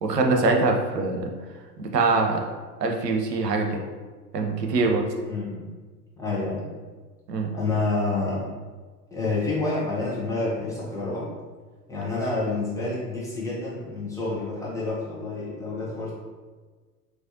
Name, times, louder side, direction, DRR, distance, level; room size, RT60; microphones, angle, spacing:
voice 1, 0.0-1.3 1.8-2.4 2.8-3.8 4.3-5.0 7.3-7.5, right 3 dB, 75° right, 2 dB, 0.6 m, -23 dB
voice 2, 5.2-5.6 6.2-6.6 7.5-8.4 9.1-11.3 11.9-16.1, left 3 dB, 5° left, -7 dB, 0.5 m, -28 dB
4.1 x 2.3 x 2.5 m, 1.4 s
figure-of-eight pair, 85°, 49 cm